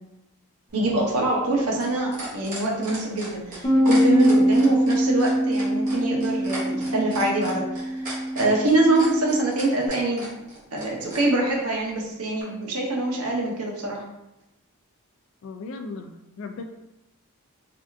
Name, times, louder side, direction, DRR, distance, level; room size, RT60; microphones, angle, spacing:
sound 1, 0.7-11.2 12.4-12.5, right 2 dB, 40° right, 1.0 m, -37 dB
voice 1, 0.7-8.1 8.3-10.2 10.7-14.0, right 2 dB, 90° right, -2 dB, 0.8 m, -24 dB
Bass guitar, 3.6-9.9, equal, 20° left, 0.6 m, -23 dB
voice 2, 15.4-16.6, left 3 dB, 60° left, 5 dB, 0.3 m, -37 dB
3.4 x 2.4 x 2.6 m, 0.89 s
head